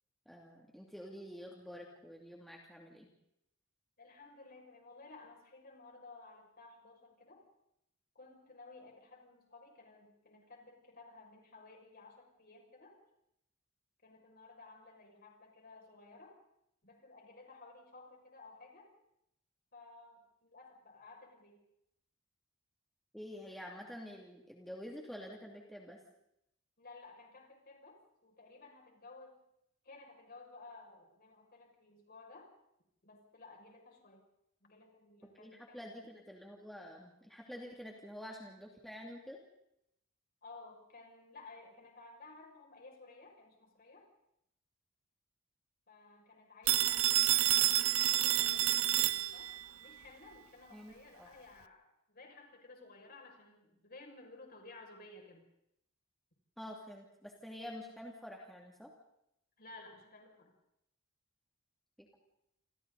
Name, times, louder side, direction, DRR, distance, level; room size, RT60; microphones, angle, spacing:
voice 1, 0.3-3.1 23.1-26.0 35.4-39.4 50.7-51.3 56.6-58.9 62.0-62.2, equal, ahead, -1 dB, 2.7 m, -48 dB
voice 2, 4.0-7.4 8.1-13.0 14.0-16.4 16.8-18.9 19.7-21.6 26.8-29.4 29.8-32.5 33.0-34.2 34.6-36.0 40.4-44.1 45.9-49.5 49.8-55.4 59.6-60.5, left 3 dB, 45° left, 1 dB, 6.4 m, -56 dB
Telephone, 46.7-49.7, right 14 dB, 75° right, 0.8 m, -29 dB
28.5 x 28.0 x 4.1 m, 0.80 s
head